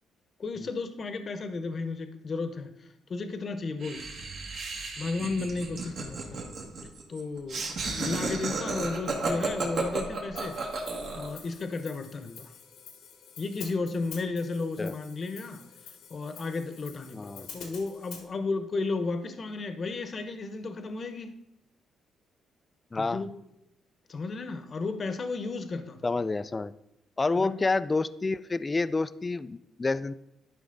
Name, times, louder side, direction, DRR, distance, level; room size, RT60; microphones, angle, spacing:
voice 1, 0.4-4.1 5.0-6.4 7.1-10.6 11.1-12.5 13.4-15.6 16.1-21.3 22.9-23.3 24.1-26.1 27.4-27.6, left 3 dB, 45° left, 9 dB, 0.9 m, -34 dB
Laughter, 3.8-11.4, right 4 dB, 65° right, 1.9 m, -33 dB
Hi-hat, 10.4-18.3, left 6 dB, 90° left, 1.5 m, -48 dB
voice 2, 17.1-17.5 22.9-23.3 26.0-26.7 27.2-30.1, left 3 dB, 25° left, 16 dB, 0.3 m, -29 dB
11.5 x 5.0 x 3.9 m, 0.85 s
cardioid pair, 90°, 0 cm